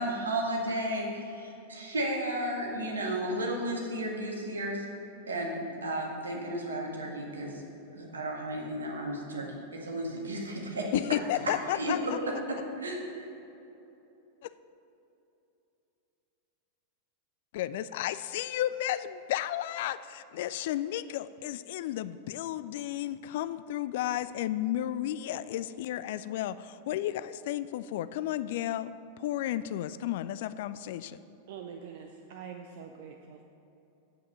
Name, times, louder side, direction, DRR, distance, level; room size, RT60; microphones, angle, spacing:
voice 1, 0.0-4.9 5.3-7.5 7.9-10.9 11.7-12.1 12.8-13.3, right 1 dB, 75° right, -1 dB, 1.7 m, -33 dB
voice 2, 10.9-12.2 17.5-31.2, left 12 dB, 55° left, 15 dB, 0.3 m, -33 dB
voice 3, 31.5-33.4, right 7 dB, 50° right, 4 dB, 0.5 m, -44 dB
8.3 x 7.5 x 6.5 m, 2.9 s
figure-of-eight pair, 90°, 0 cm